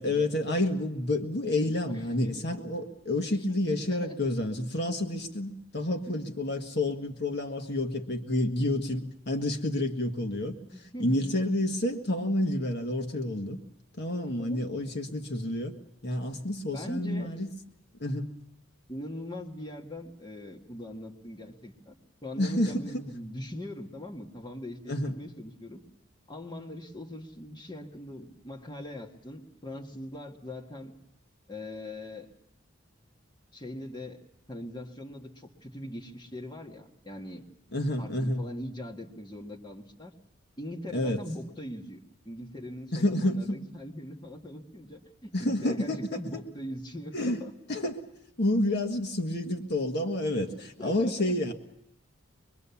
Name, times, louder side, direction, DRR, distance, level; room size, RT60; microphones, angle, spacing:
voice 1, 0.0-13.6 14.0-15.7 16.0-17.5 18.0-18.3 22.4-23.0 24.9-25.2 37.7-38.4 40.9-41.2 42.9-43.6 45.3-46.4 47.1-47.4 47.7-48.0 48.4-51.5, left 1 dB, 55° left, 3 dB, 1.6 m, -29 dB
voice 2, 1.7-2.6 3.5-3.8 4.0-4.2 6.1-6.2 10.7-11.3 14.2-14.7 16.7-17.3 18.9-22.0 22.2-25.8 26.3-30.9 31.5-32.3 33.5-34.2 34.5-37.4 38.0-40.1 40.6-42.0 42.3-47.5 50.5-51.3, left 1 dB, 20° left, 0 dB, 1.8 m, -41 dB
23.5 x 23.0 x 7.1 m, 0.82 s
head